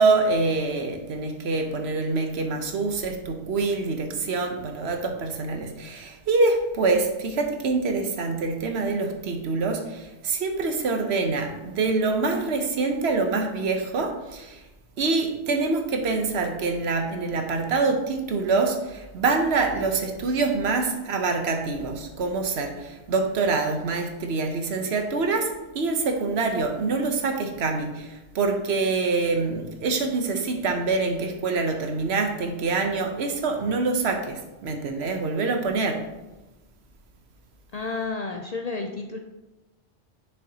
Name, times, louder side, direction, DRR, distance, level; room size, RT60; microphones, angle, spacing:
voice 1, 0.0-14.6 15.0-36.0, right 3 dB, 65° right, 5 dB, 1.0 m, -25 dB
voice 2, 37.7-39.2, left 3 dB, 65° left, 3 dB, 0.4 m, -31 dB
7.0 x 6.5 x 2.7 m, 1.0 s
omnidirectional pair, 1.3 m